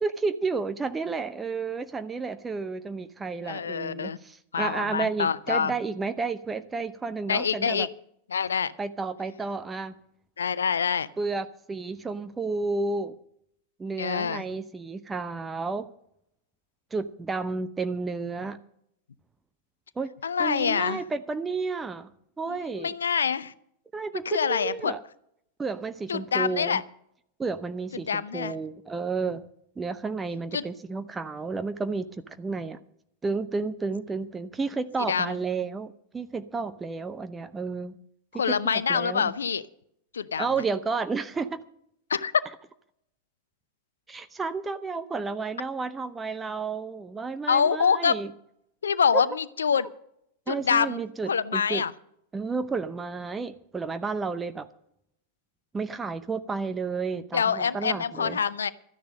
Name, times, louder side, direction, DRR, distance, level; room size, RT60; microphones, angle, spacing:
voice 1, 0.0-7.9 8.8-9.9 11.2-13.1 13.8-15.9 16.9-18.6 20.0-20.1 20.4-22.1 22.4-22.9 23.9-25.0 25.6-26.8 27.4-29.4 29.8-32.8 33.2-38.0 38.5-39.3 40.4-41.6 44.1-48.3 49.1-49.2 49.8-49.9 50.5-51.8 52.3-54.7 55.7-58.4, right 4 dB, 15° right, 11 dB, 0.7 m, -31 dB
voice 2, 3.4-4.2 4.5-5.7 7.3-7.9 8.3-8.7 10.4-11.1 14.0-14.4 20.2-21.0 22.5-23.5 24.3-24.9 26.1-26.8 28.1-28.5 30.5-30.6 35.1-35.3 38.4-39.6 40.1-40.5 42.1-42.3 47.5-48.2 48.8-49.9 50.5-51.0 51.3-51.9 57.3-58.7, left 6 dB, 70° left, 16 dB, 0.5 m, -25 dB
13.0 x 10.0 x 6.4 m, 0.74 s
figure-of-eight pair, 90°, 0 cm